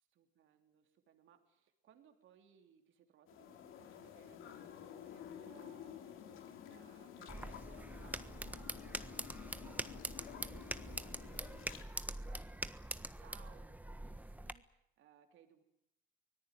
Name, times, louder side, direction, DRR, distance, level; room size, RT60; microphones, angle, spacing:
voice 1, 0.0-15.6, right 9 dB, 80° right, 5 dB, 3.1 m, -66 dB
sound 1, 3.3-11.8, left 9 dB, 85° left, 3.2 m, -52 dB
sound 2, 7.3-14.5, right 1 dB, 10° right, 1.4 m, -44 dB
24.5 x 19.0 x 9.2 m, 0.79 s
cardioid pair, 90°, 20 cm